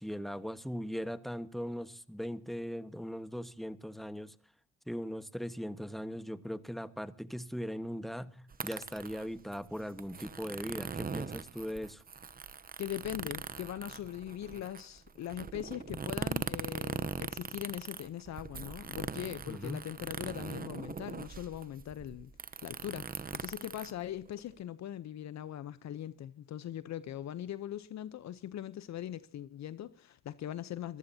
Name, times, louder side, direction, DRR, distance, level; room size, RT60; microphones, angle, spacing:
voice 1, 0.0-4.3 4.9-12.0 19.5-19.8, equal, ahead, 1.3 m, -39 dB
sound 1, 8.5-24.6, right 5 dB, 30° right, 0.8 m, -41 dB
voice 2, 12.8-22.3 22.6-31.0, left 11 dB, 65° left, 0.8 m, -41 dB
25.5 x 15.0 x 2.8 m
cardioid pair, 90°, 30 cm